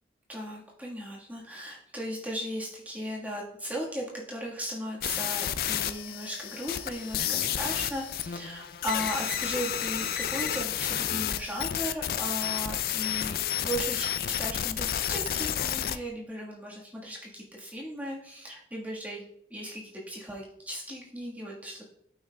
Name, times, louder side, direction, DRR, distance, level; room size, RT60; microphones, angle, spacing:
voice 1, 0.3-19.2 19.5-21.8, equal, 10° right, -4 dB, 1.4 m, -37 dB
sound 1, 5.0-16.0, left 10 dB, 55° left, 0.3 m, -31 dB
12.0 x 5.6 x 2.2 m, 0.74 s
head